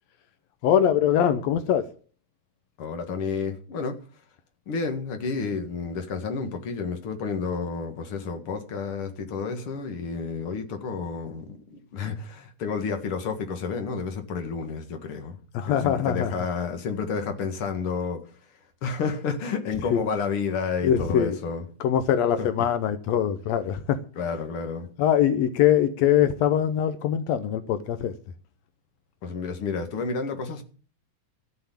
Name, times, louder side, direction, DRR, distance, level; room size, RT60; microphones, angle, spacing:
voice 1, 0.6-1.8 15.5-16.3 19.9-20.0 20.8-21.4 21.8-24.0 25.0-28.1, left 9 dB, 80° left, 1.5 m, -22 dB
voice 2, 2.8-4.0 4.7-15.4 15.7-18.2 18.8-21.6 22.4-22.5 24.2-24.9 29.2-30.6, left 5 dB, 45° left, 2.2 m, -30 dB
14.0 x 6.9 x 8.4 m
omnidirectional pair, 3.9 m